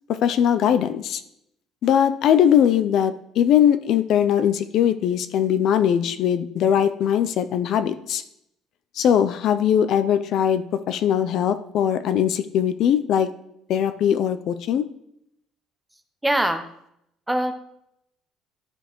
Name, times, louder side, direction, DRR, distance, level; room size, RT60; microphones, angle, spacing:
voice 1, 0.2-1.2 1.8-8.2 9.0-13.3 13.7-14.8, left 9 dB, 60° left, 10 dB, 0.4 m, -20 dB
voice 2, 16.2-16.7 17.3-17.5, right 1 dB, 5° right, 8 dB, 0.6 m, -22 dB
12.5 x 5.2 x 3.0 m, 0.77 s
cardioid pair, 140°, 0 cm